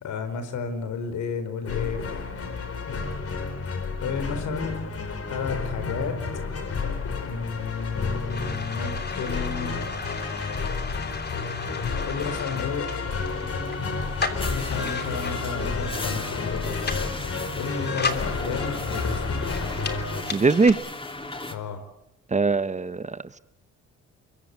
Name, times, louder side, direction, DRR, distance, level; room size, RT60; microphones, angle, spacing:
voice 1, 0.0-2.0 4.0-4.9 5.3-6.2 7.1-9.8 11.8-13.0 14.5-16.8 17.5-19.3 21.5-21.8, left 5 dB, 75° left, 10 dB, 4.7 m, -32 dB
sound 1, 1.6-20.2, left 4 dB, 50° left, 4.1 m, -31 dB
sound 2, 7.7-20.7, left 4 dB, 35° left, 3.0 m, -36 dB
sound 3, 12.9-21.5, left 2 dB, 15° left, 3.1 m, -38 dB
voice 2, 20.3-20.8 22.3-23.4, right 4 dB, 25° right, 14 dB, 1.0 m, -21 dB
24.0 x 23.0 x 8.4 m, 0.86 s
cardioid pair, 90°, 30 cm